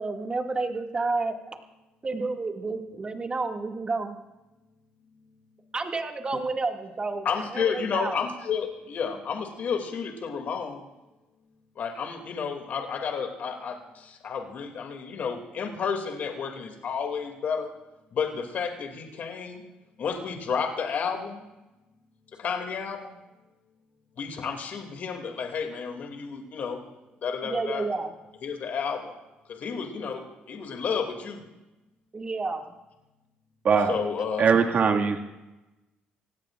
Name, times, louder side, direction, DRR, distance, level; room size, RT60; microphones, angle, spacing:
voice 1, 0.0-1.3 2.0-4.2 5.7-7.3 7.5-8.2 27.4-28.1 32.1-32.8, right 3 dB, 30° right, 3 dB, 2.2 m, -30 dB
voice 2, 7.2-10.8 11.8-17.7 18.1-19.6 20.0-21.4 22.4-23.2 24.2-26.8 27.2-27.9 28.4-29.1 29.5-31.4 33.9-34.6, left 6 dB, 60° left, 3 dB, 2.6 m, -31 dB
voice 3, 34.4-35.2, right 6 dB, 50° right, 2 dB, 2.0 m, -21 dB
27.5 x 17.5 x 2.5 m, 1.0 s
cardioid pair, 85°, 3 cm